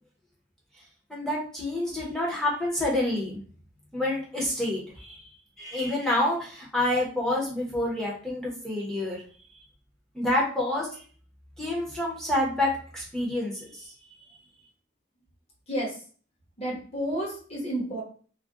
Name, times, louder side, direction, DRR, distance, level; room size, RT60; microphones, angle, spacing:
voice 1, 1.1-3.4 3.9-5.2 5.6-9.2 10.1-11.0 11.6-13.9, left 1 dB, 5° left, -4 dB, 0.7 m, -28 dB
voice 2, 15.7-16.0 16.6-18.0, right 1 dB, 30° left, -2 dB, 0.9 m, -31 dB
2.4 x 2.2 x 3.6 m, 0.43 s
head